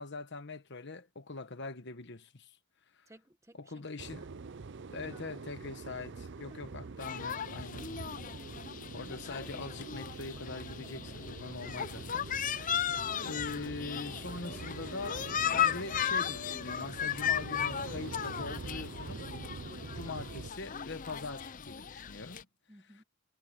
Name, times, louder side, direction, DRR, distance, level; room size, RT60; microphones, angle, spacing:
voice 1, 0.0-2.6 2.9-3.1 3.6-4.2 4.9-7.8 8.9-19.3 19.9-22.5, left 3 dB, 55° left, 1.3 m, -43 dB
voice 2, 3.1-4.3 4.9-5.4 6.1-6.2 6.5-7.1 8.1-8.6 22.7-23.0, right 1 dB, 15° right, 1.6 m, -60 dB
sound 1, 4.0-20.5, right 4 dB, 55° right, 0.6 m, -45 dB
sound 2, 7.0-22.4, left 9 dB, 40° left, 0.6 m, -36 dB
head